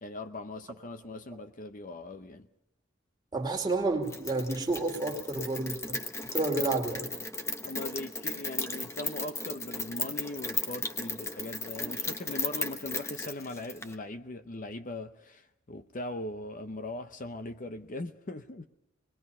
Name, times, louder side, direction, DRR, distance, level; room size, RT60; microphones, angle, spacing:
voice 1, 0.0-2.5 7.6-18.7, left 2 dB, 40° left, 0.7 m, -40 dB
voice 2, 3.3-6.0 6.3-7.1, right 2 dB, 20° right, 2.5 m, -30 dB
Rain, 4.1-13.9, left 3 dB, 15° left, 1.0 m, -36 dB
26.5 x 20.5 x 5.5 m
head